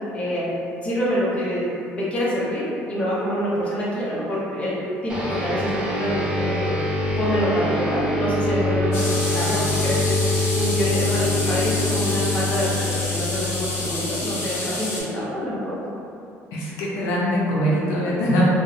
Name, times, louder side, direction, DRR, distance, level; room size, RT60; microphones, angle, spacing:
voice 1, 0.1-0.5 0.8-4.8 5.0-6.7 7.2-12.8 13.1-15.7, equal, 25° left, -8 dB, 0.7 m, -26 dB
sound 1, 5.1-14.8, left 2 dB, 15° right, 0.5 m, -25 dB
sound 2, 8.9-15.0, left 1 dB, 60° left, 0.9 m, -29 dB
voice 2, 16.5-18.4, equal, 80° left, -5 dB, 0.4 m, -22 dB
2.5 x 2.0 x 2.5 m, 2.6 s
cardioid pair, 105°, 5 cm